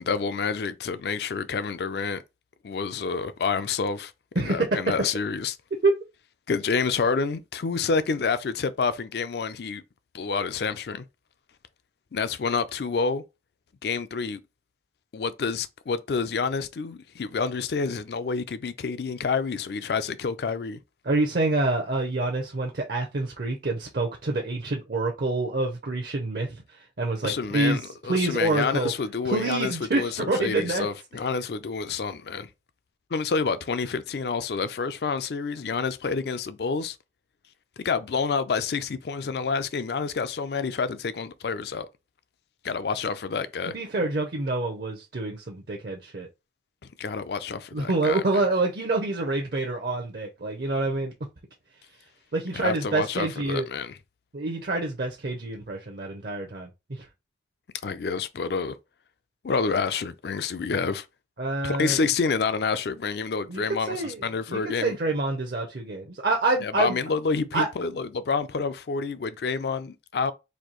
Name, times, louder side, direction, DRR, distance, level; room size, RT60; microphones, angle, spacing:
voice 1, 0.0-2.2 2.6-5.6 6.5-9.8 10.1-11.0 12.1-13.2 13.8-14.4 15.1-20.8 27.2-32.5 33.1-37.0 37.8-41.9 42.6-43.8 47.0-48.5 52.5-54.0 57.8-58.8 59.4-61.1 61.6-65.0 66.6-70.3, left 5 dB, 65° left, 0.4 m, -28 dB
voice 2, 4.4-4.7 5.8-5.9 21.0-27.8 28.1-28.9 29.2-30.9 43.7-46.3 47.7-51.1 52.3-53.7 54.3-57.1 61.4-62.0 63.5-64.2 64.5-66.9 67.5-67.7, right 2 dB, 60° right, 0.6 m, -27 dB
4.3 x 2.7 x 3.0 m
head